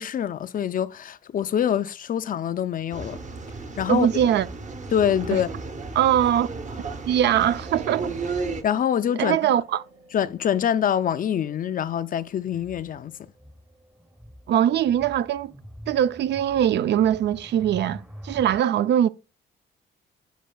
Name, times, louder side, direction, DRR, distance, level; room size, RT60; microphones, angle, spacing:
voice 1, 0.0-3.2 3.8-4.1 4.9-5.5 8.6-9.5 10.1-13.2, left 9 dB, 45° left, 0.4 m, -25 dB
sound 1, 2.9-8.6, right 3 dB, 35° right, 0.9 m, -34 dB
voice 2, 3.9-4.5 6.0-6.5 7.1-8.1 9.2-9.8 14.5-15.5 15.9-19.1, right 10 dB, 60° right, 0.4 m, -21 dB
sound 2, 7.4-15.0, right 2 dB, 80° right, 2.1 m, -54 dB
sound 3, 12.4-18.6, equal, 10° right, 0.8 m, -45 dB
10.0 x 5.0 x 2.3 m
cardioid pair, 90°, 20 cm